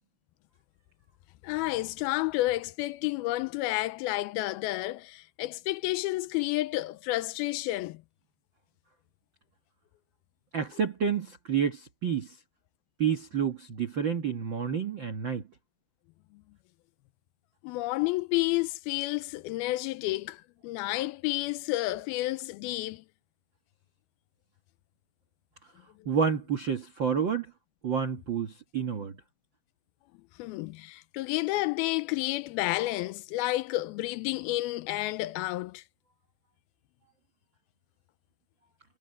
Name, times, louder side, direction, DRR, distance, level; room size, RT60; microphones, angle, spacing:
voice 1, 1.4-8.0 17.6-23.0 30.4-35.8, left 18 dB, 85° left, 2.4 m, -30 dB
voice 2, 10.5-12.3 13.0-15.4 26.0-27.5 27.8-29.1, right 7 dB, 75° right, 1.0 m, -29 dB
omnidirectional pair, 4.4 m